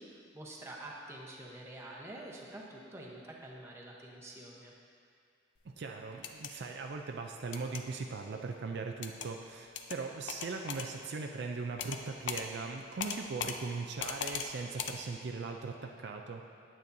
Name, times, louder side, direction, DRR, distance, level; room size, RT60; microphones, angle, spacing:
voice 1, 0.0-4.7, right 1 dB, 15° right, -3 dB, 0.9 m, -47 dB
voice 2, 5.8-16.4, right 4 dB, 60° right, 3 dB, 0.4 m, -39 dB
sound 1, 6.1-6.5 7.5-7.8 9.0-9.3 9.7-10.0 10.3-10.9 11.8-12.0 12.3-12.4 13.0-13.6 14.0-14.5 14.8-14.9, left 7 dB, 65° left, 0.5 m, -38 dB
9.2 x 8.5 x 2.7 m, 2.4 s
head